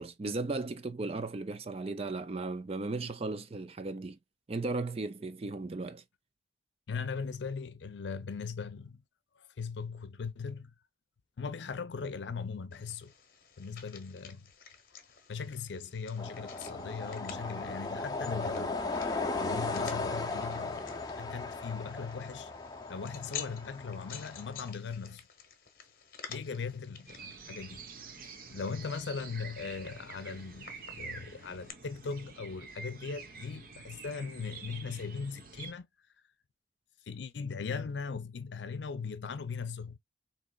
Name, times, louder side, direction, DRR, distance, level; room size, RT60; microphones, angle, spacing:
voice 1, 0.0-4.2 4.5-6.0, right 3 dB, 35° right, 0.4 m, -36 dB
voice 2, 6.9-9.0 9.4-10.7 11.4-13.1 13.6-14.5 15.3-18.8 19.4-20.8 21.2-22.5 22.9-25.2 26.3-27.8 28.5-35.9 37.1-40.0, left 5 dB, 90° left, 0.5 m, -39 dB
sound 1, 12.7-31.7, left 8 dB, 50° left, 0.9 m, -51 dB
sound 2, 16.2-24.7, left 3 dB, 20° left, 0.6 m, -37 dB
sound 3, 27.1-35.7, right 5 dB, 50° right, 0.8 m, -48 dB
4.2 x 2.8 x 2.3 m
head